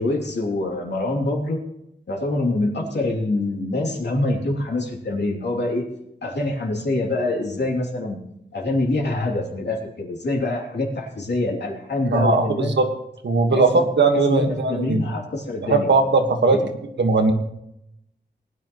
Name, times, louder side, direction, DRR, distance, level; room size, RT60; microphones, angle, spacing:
voice 1, 0.0-1.6 2.1-5.9 6.2-8.2 8.5-12.7 13.5-13.9 14.3-15.9 16.5-16.7, left 2 dB, 70° left, 0 dB, 2.8 m, -25 dB
voice 2, 12.0-12.8 13.2-15.0 15.7-16.6 17.0-17.3, right 3 dB, 75° right, 5 dB, 1.5 m, -19 dB
20.0 x 10.0 x 3.1 m, 0.80 s
wide cardioid pair, 115°, 18 cm